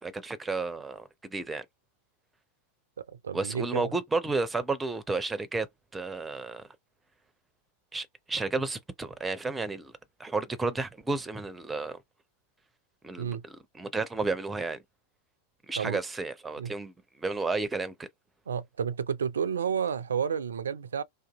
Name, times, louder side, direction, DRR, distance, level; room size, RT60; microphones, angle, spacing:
voice 1, 0.0-1.7 3.3-5.7 5.9-6.6 7.9-9.9 10.2-12.0 13.0-14.8 15.7-18.1, right 3 dB, 10° right, 0.5 m, -32 dB
voice 2, 3.0-3.9 13.2-13.4 15.8-16.0 16.6-16.7 18.5-21.0, right 7 dB, 70° right, 0.3 m, -31 dB
2.6 x 2.3 x 2.3 m
figure-of-eight pair, 90°, 0 cm